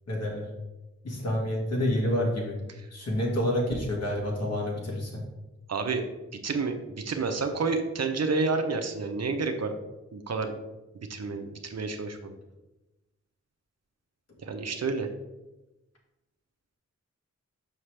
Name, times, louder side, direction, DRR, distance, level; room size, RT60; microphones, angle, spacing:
voice 1, 0.1-0.5 1.0-2.6 2.9-5.2, left 1 dB, 60° left, -2 dB, 2.0 m, -28 dB
voice 2, 5.7-6.0 6.4-9.7 10.1-10.5 10.9-12.3 14.4-15.1, right 4 dB, 60° right, 6 dB, 0.7 m, -29 dB
5.8 x 5.8 x 3.3 m, 1.0 s
wide cardioid pair, 70°, 29 cm